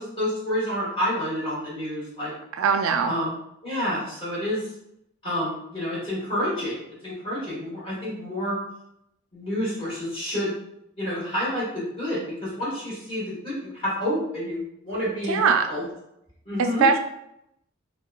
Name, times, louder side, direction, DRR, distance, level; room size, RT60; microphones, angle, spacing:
voice 1, 0.0-2.3 3.0-3.4 3.6-4.7 5.2-8.6 9.3-10.5 11.0-15.8 16.4-16.9, equal, 25° left, -8 dB, 1.1 m, -29 dB
voice 2, 2.6-3.1 15.3-15.7 16.6-17.0, right 5 dB, 85° right, 5 dB, 0.3 m, -21 dB
2.8 x 2.2 x 2.3 m, 0.79 s
head